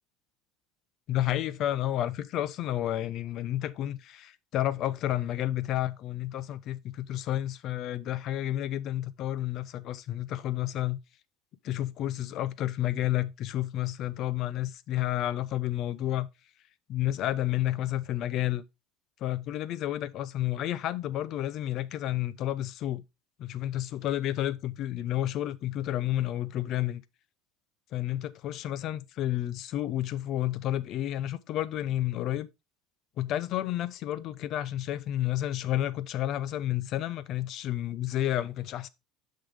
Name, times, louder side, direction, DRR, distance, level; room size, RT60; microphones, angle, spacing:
voice 1, 1.1-11.0 11.6-16.3 16.9-18.6 19.2-23.0 23.4-27.0 27.9-32.5 33.2-38.9, left 13 dB, 35° left, 0.4 m, -31 dB
6.9 x 5.6 x 3.4 m
cardioid pair, 180°, 0 cm